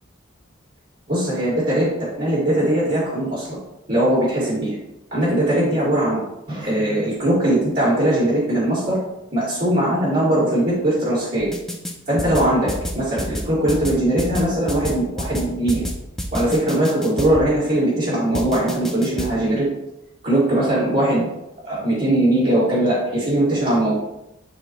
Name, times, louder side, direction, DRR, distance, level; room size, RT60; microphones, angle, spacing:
voice 1, 1.1-3.6 3.9-4.8 5.1-6.2 6.5-9.0 9.3-11.5 12.1-15.8 16.3-19.7 20.2-21.3 21.6-24.0, right 1 dB, 45° right, -10 dB, 2.1 m, -20 dB
sound 1, 11.4-11.9 12.2-17.5 18.3-19.3, equal, ahead, 0.6 m, -28 dB
9.9 x 4.2 x 3.0 m, 0.88 s
head